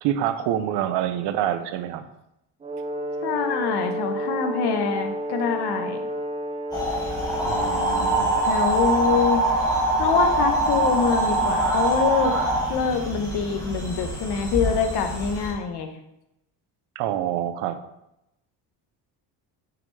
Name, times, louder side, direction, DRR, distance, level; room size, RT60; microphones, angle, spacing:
voice 1, 0.0-2.1 7.5-8.4 17.0-17.8, right 11 dB, 75° right, 10 dB, 0.7 m, -26 dB
Brass instrument, 2.6-8.6, equal, 15° right, 0.5 m, -31 dB
voice 2, 3.2-6.0 8.4-9.4 10.0-12.3 12.7-15.9, left 6 dB, 70° left, 6 dB, 1.0 m, -25 dB
sound 1, 6.7-15.5, right 2 dB, 10° left, 2.2 m, -24 dB
5.9 x 5.3 x 3.2 m, 0.85 s
cardioid pair, 115°, 42 cm